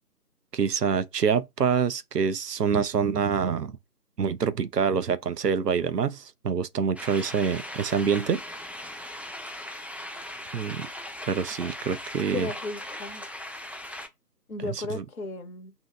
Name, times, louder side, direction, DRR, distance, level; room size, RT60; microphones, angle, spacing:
voice 1, 0.5-3.8 4.2-8.4 10.5-10.9 11.3-12.5 14.6-15.0, right 6 dB, 70° right, 0.5 m, -26 dB
sound 1, 7.0-14.1, left 1 dB, 5° right, 0.3 m, -39 dB
voice 2, 12.3-13.2 14.5-15.7, left 3 dB, 60° left, 0.7 m, -35 dB
2.9 x 2.6 x 2.3 m
figure-of-eight pair, 160°, 49 cm